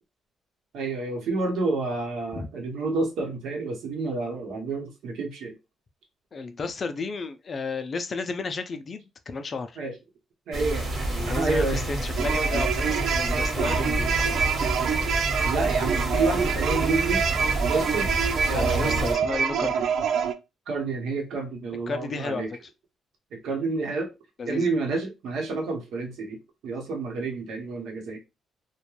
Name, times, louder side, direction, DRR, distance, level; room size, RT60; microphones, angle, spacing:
voice 1, 0.7-5.5 9.7-9.9 10.5-10.9 11.3-11.8 15.4-17.2 17.7-18.1 18.5-19.2 20.7-22.5 23.3-24.1 24.5-26.4 26.6-28.2, right 3 dB, 80° right, 0.9 m, -29 dB
voice 2, 6.3-9.8 11.1-14.4 18.5-19.9 21.9-22.7 24.4-24.7, left 4 dB, 30° left, 0.3 m, -33 dB
sound 1, 10.5-19.1, right 1 dB, 45° right, 0.9 m, -29 dB
sound 2, 12.2-20.3, right 7 dB, 60° right, 0.3 m, -26 dB
2.4 x 2.2 x 3.0 m
cardioid pair, 170°, 0 cm